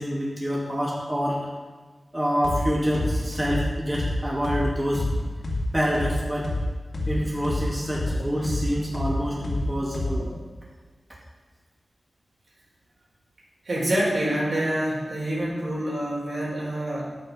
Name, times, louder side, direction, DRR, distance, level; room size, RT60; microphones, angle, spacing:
voice 1, 0.0-1.4 2.1-5.1 5.7-6.5 7.1-10.3, equal, 15° right, -5 dB, 2.7 m, -27 dB
sound 1, 2.4-2.6 2.9-6.6 6.9-10.4, left 2 dB, 80° left, 2.3 m, -28 dB
voice 2, 13.6-17.1, right 1 dB, 70° right, -4 dB, 4.3 m, -26 dB
11.0 x 8.5 x 5.5 m, 1.4 s
wide cardioid pair, 80°, 0 cm